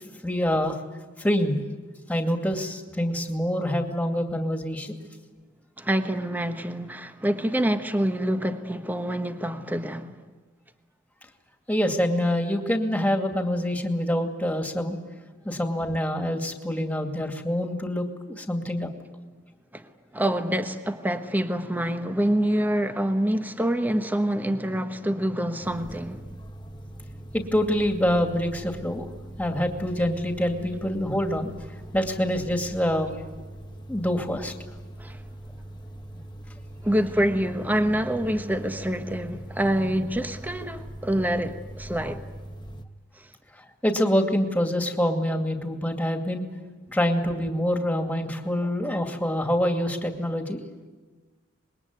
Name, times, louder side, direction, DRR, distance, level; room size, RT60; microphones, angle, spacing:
voice 1, 0.2-0.8 1.2-1.6 2.1-5.0 11.7-15.0 15.4-18.9 27.3-29.1 29.4-31.5 31.9-33.1 33.9-34.5 43.8-46.4 46.9-50.6, equal, 10° left, 2.4 m, -26 dB
voice 2, 5.8-10.2 19.7-19.9 20.1-26.2 35.0-35.2 36.8-42.2 43.2-43.3, right 1 dB, 10° right, 1.2 m, -26 dB
sound 1, 25.6-42.8, right 1 dB, 25° left, 1.2 m, -41 dB
26.0 x 21.5 x 9.6 m
head